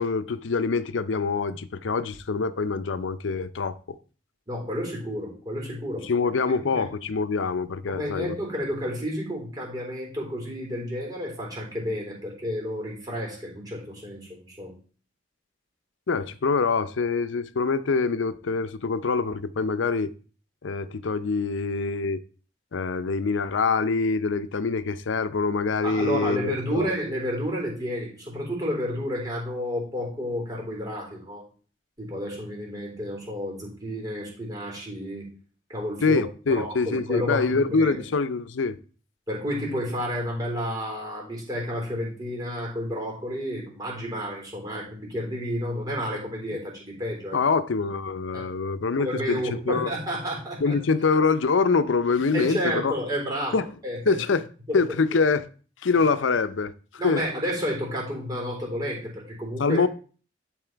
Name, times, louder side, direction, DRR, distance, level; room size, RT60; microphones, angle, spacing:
voice 1, 0.0-4.0 6.0-8.4 16.1-20.1 20.6-22.2 22.7-26.9 36.0-38.8 47.3-49.9 50.6-52.9 53.5-53.6 54.1-54.5 54.7-55.5 55.8-56.7 57.0-57.2 59.6-59.9, left 4 dB, 90° left, 0.6 m, -25 dB
voice 2, 4.5-6.1 6.7-6.9 7.9-14.7 25.8-31.4 32.0-35.2 35.7-36.2 36.5-38.0 39.3-47.4 48.3-48.5 49.0-50.8 52.3-54.2 54.7-54.8 55.1-55.2 57.0-59.8, equal, 20° right, 3.6 m, -31 dB
11.5 x 4.2 x 4.5 m
head